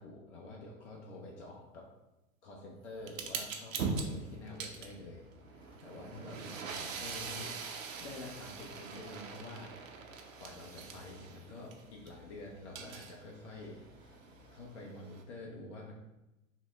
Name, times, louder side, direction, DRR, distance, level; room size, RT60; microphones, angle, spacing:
voice 1, 0.0-1.9 2.4-7.5 8.0-9.7 10.3-13.8 14.5-15.9, left 2 dB, 55° left, -2 dB, 1.0 m, -48 dB
sound 1, 2.9-14.6, left 2 dB, 10° left, 0.7 m, -61 dB
sound 2, 3.1-12.1 12.5-15.2, right 5 dB, 65° right, 0.9 m, -42 dB
6.1 x 2.1 x 3.7 m, 0.98 s
figure-of-eight pair, 100°, 42 cm